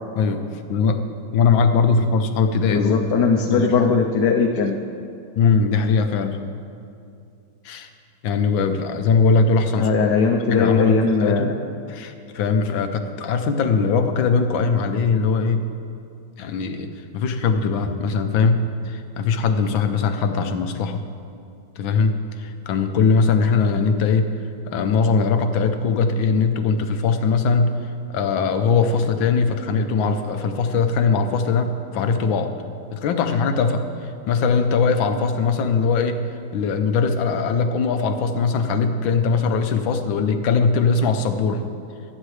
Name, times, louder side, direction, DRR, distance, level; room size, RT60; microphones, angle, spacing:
voice 1, 0.1-1.0 1.3-2.9 3.5-3.9 5.4-6.4 7.6-7.9 8.2-9.9 10.5-11.5 11.9-15.6 16.4-21.0 21.8-22.1 22.4-24.3 24.7-27.7 28.1-32.5 32.9-36.2 36.5-41.6, left 5 dB, 80° left, 7 dB, 1.6 m, -20 dB
voice 2, 2.7-4.7 9.8-11.5, left 5 dB, 65° left, 1 dB, 1.3 m, -19 dB
23.5 x 8.8 x 3.3 m, 2.5 s
omnidirectional pair, 2.1 m